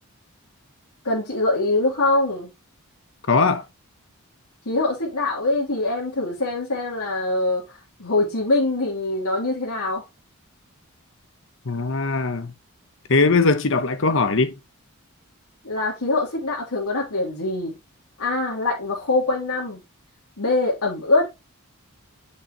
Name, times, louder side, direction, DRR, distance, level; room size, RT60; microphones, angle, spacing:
voice 1, 1.0-2.5 4.6-7.6 8.0-10.0 15.6-17.7 18.2-19.8 20.4-21.3, left 2 dB, 80° left, 3.2 m, -23 dB
voice 2, 3.3-3.6 11.7-12.5 13.1-14.5, left 3 dB, 60° left, 1.0 m, -20 dB
8.2 x 6.4 x 3.0 m
head